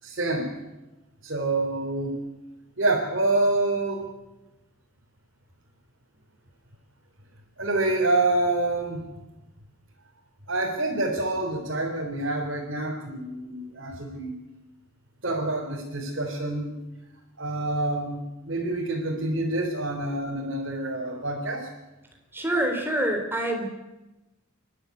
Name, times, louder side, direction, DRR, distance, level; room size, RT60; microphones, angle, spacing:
voice 1, 0.0-0.5 1.2-2.2 2.8-4.1 7.6-9.1 10.5-14.4 15.2-16.8 17.4-21.7, right 2 dB, 60° right, -4 dB, 3.7 m, -27 dB
voice 2, 22.3-23.6, right 1 dB, 10° right, 3 dB, 3.7 m, -26 dB
28.5 x 12.0 x 9.5 m, 1.0 s
head